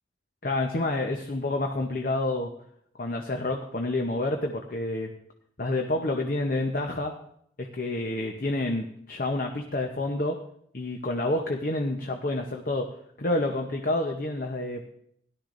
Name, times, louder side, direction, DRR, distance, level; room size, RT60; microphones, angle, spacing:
voice 1, 0.4-2.5 3.0-5.1 5.6-7.1 7.6-10.4 10.7-12.9 13.2-14.9, left 2 dB, 45° left, 3 dB, 0.8 m, -28 dB
17.0 x 11.5 x 2.6 m, 0.67 s
head